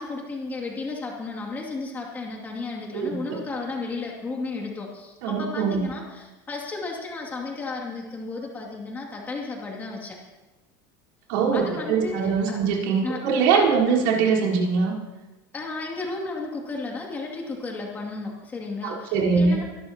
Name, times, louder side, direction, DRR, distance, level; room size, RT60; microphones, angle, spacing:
voice 1, 0.0-10.2 11.5-12.6 13.0-13.2 13.5-13.8 15.5-19.6, left 3 dB, 15° left, -1 dB, 2.5 m, -33 dB
voice 2, 2.9-3.4 5.2-5.9 11.3-14.9 18.8-19.6, right 5 dB, 70° right, -5 dB, 4.1 m, -22 dB
23.0 x 12.5 x 2.9 m, 1.2 s
supercardioid pair, 165°, 11 cm